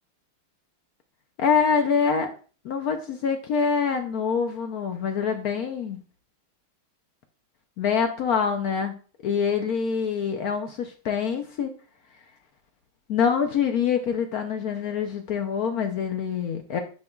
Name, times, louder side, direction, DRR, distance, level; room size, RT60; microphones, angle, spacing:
voice 1, 1.4-2.3 2.6-6.0 7.8-9.0 9.2-11.7 13.1-16.8, left 6 dB, 70° left, 5 dB, 0.8 m, -25 dB
9.5 x 4.6 x 2.3 m, 0.39 s
omnidirectional pair, 2.3 m